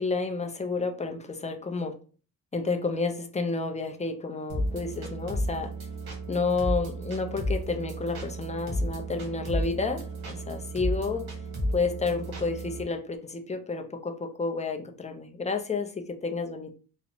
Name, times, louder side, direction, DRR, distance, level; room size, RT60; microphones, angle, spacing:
voice 1, 0.0-1.9 2.5-5.7 6.3-11.4 11.7-16.7, left 4 dB, 20° left, 5 dB, 0.4 m, -30 dB
sound 1, 4.5-12.8, right 1 dB, 80° right, 0.9 m, -33 dB
2.9 x 2.0 x 2.6 m, 0.37 s
wide cardioid pair, 85°, 37 cm